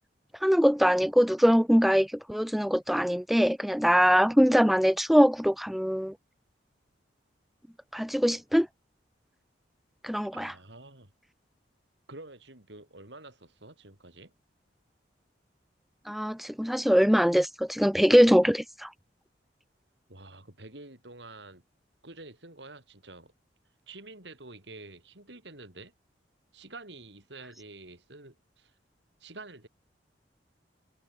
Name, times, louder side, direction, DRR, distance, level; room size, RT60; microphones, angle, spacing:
voice 1, 0.4-6.1 7.9-8.7 10.0-10.5 16.1-18.9, equal, ahead, 0.5 m, -22 dB
voice 2, 10.3-11.1 12.1-14.3 20.1-21.6 22.0-23.3 23.9-25.9 26.5-28.7 29.2-29.7, right 2 dB, 70° right, 5.0 m, -48 dB
head